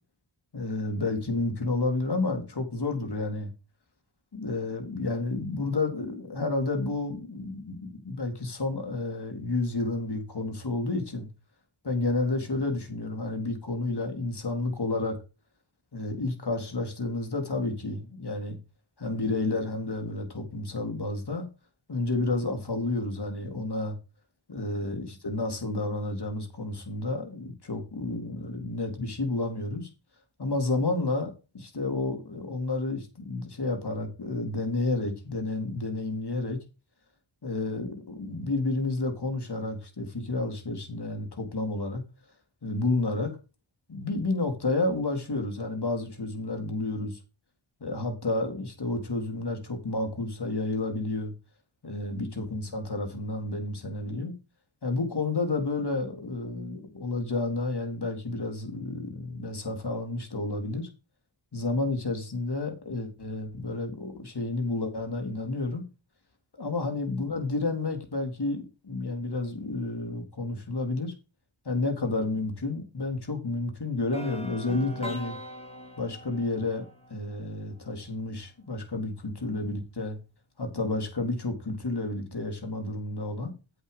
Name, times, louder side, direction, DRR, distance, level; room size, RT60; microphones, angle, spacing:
voice 1, 0.5-3.5 4.3-11.3 11.8-15.2 15.9-18.6 19.0-21.5 21.9-24.0 24.5-29.9 30.4-36.6 37.4-42.0 42.6-43.4 43.9-47.2 47.8-51.3 51.8-54.3 54.8-60.9 61.5-65.8 66.6-71.1 71.7-75.4 76.0-80.2 80.6-83.5, left 2 dB, 55° left, 3.7 m, -30 dB
sound 1, 74.1-78.1, equal, 15° left, 5.5 m, -42 dB
8.3 x 8.3 x 5.1 m
cardioid pair, 55°, 47 cm